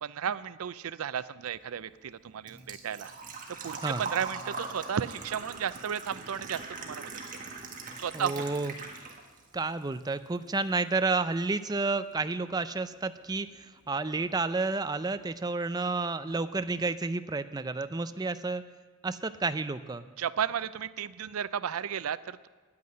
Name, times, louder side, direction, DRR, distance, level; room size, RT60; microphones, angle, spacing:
voice 1, 0.0-3.1 3.6-7.1 8.0-8.5 20.2-22.5, right 8 dB, 90° right, 16 dB, 0.5 m, -33 dB
Engine / Trickle dribble / Fill (with liquid), 1.5-9.5 9.8-10.8 11.1-11.2 13.1-13.2 13.3-13.7 14.1-14.2 14.4-14.5, right 4 dB, 40° right, 1.6 m, -41 dB
voice 2, 8.1-8.7 9.5-18.6 19.0-20.1, right 3 dB, 20° right, 11 dB, 0.4 m, -31 dB
9.6 x 9.4 x 9.7 m, 1.4 s
head